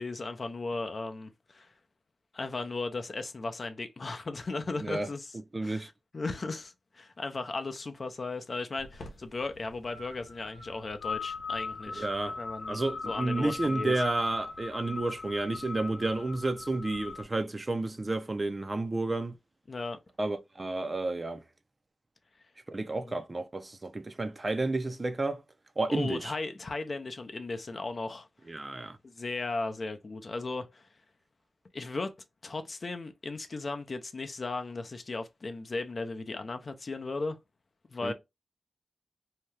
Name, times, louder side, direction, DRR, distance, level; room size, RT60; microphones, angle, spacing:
voice 1, 0.0-1.7 2.3-5.3 5.6-12.1 12.4-12.8 13.0-13.9 19.7-20.0 23.0-23.2 25.9-28.3 29.0-30.9 31.7-32.1 32.4-37.4 37.9-38.1, left 3 dB, 50° left, 0.5 m, -36 dB
voice 2, 5.5-5.9 12.0-12.4 12.7-19.4 20.2-21.4 22.7-25.4 25.8-26.3 28.5-29.0 38.0-38.1, right 2 dB, 35° right, 0.5 m, -31 dB
sound 1, 8.8-17.2, left 4 dB, 75° left, 0.8 m, -39 dB
2.8 x 2.3 x 3.2 m
cardioid pair, 75°, 0 cm